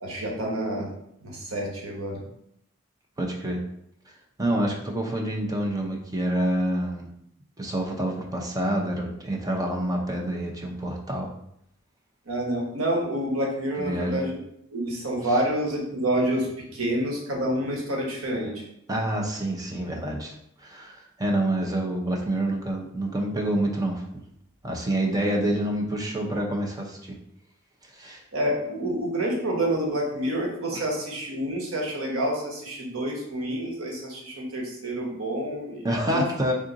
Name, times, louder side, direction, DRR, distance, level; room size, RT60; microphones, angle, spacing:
voice 1, 0.0-0.9 1.2-2.2 12.3-14.4 14.7-18.6 28.3-36.2, right 1 dB, 85° right, -1 dB, 1.0 m, -28 dB
voice 2, 3.2-3.6 4.4-7.1 7.6-11.3 13.8-14.2 18.9-20.3 20.6-24.0 24.6-27.1 27.9-28.2 30.7-30.8 35.8-36.5, right 1 dB, 20° right, 0 dB, 0.5 m, -27 dB
3.6 x 2.5 x 3.8 m, 0.75 s
head